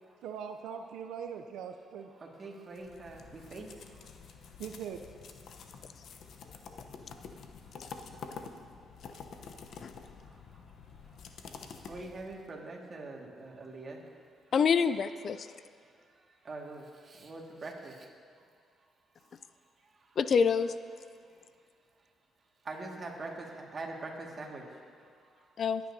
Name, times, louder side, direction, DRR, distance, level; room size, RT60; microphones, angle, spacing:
voice 1, 0.2-2.1 4.6-5.0, right 7 dB, 85° right, 6 dB, 0.5 m, -41 dB
voice 2, 2.1-4.5 6.5-6.6 7.6-7.7 8.2-8.5 9.1-9.2 9.5-9.6 10.0-10.7 11.0-11.2 11.4-11.6 11.9-14.4 15.8-18.1 18.4-18.5 19.2-20.2 21.2-21.6 22.0-22.1 22.6-25.6, right 2 dB, 40° right, 0 dB, 1.8 m, -45 dB
sound 1, 2.8-12.5, left 5 dB, 70° left, 0.8 m, -48 dB
voice 3, 14.5-15.5 20.2-20.7 25.6-25.8, left 6 dB, 55° left, 13 dB, 0.3 m, -26 dB
21.0 x 9.2 x 2.7 m, 2.1 s
cardioid pair, 90°, 0 cm